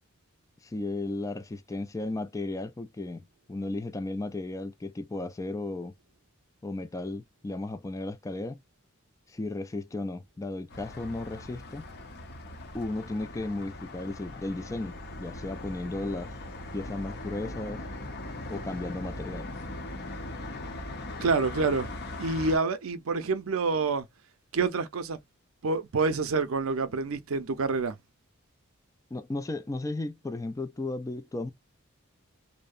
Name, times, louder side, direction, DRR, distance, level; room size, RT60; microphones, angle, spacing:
voice 1, 0.6-5.9 6.6-8.6 9.3-11.9 12.7-16.3 16.7-17.8 18.5-19.5 29.1-31.5, left 2 dB, 15° left, 0.3 m, -35 dB
sound 1, 10.7-22.6, left 2 dB, 50° left, 0.7 m, -40 dB
voice 2, 21.2-21.9 22.2-24.1 24.5-25.2 25.6-28.0, right 4 dB, 75° right, 0.5 m, -27 dB
2.7 x 2.1 x 2.4 m
head